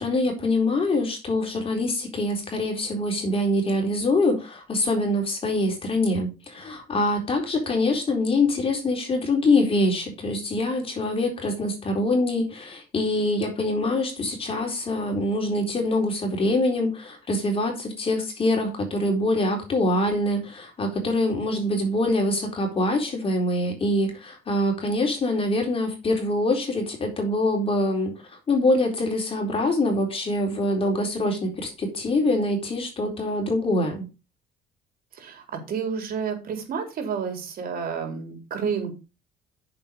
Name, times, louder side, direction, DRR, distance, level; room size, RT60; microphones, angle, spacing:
voice 1, 0.0-28.1 28.5-34.1, left 2 dB, 35° left, 2 dB, 4.1 m, -24 dB
voice 2, 35.1-38.9, right 6 dB, 60° right, 4 dB, 4.2 m, -30 dB
8.9 x 7.0 x 5.3 m, 0.30 s
cardioid pair, 110°, 17 cm